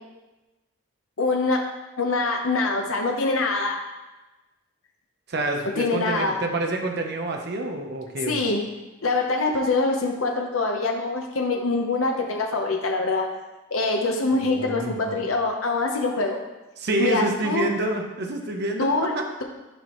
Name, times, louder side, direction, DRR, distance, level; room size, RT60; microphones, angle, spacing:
voice 1, 1.2-1.6 2.0-3.8 5.8-6.3 8.3-8.6 9.0-13.3 13.7-16.4 17.0-17.7 18.8-19.1, left 3 dB, 70° left, 1 dB, 0.9 m, -24 dB
voice 2, 5.3-8.4 14.3-15.2 16.8-18.9 19.2-19.3, right 2 dB, 50° right, 2 dB, 0.8 m, -27 dB
11.0 x 4.7 x 3.1 m, 1.1 s
head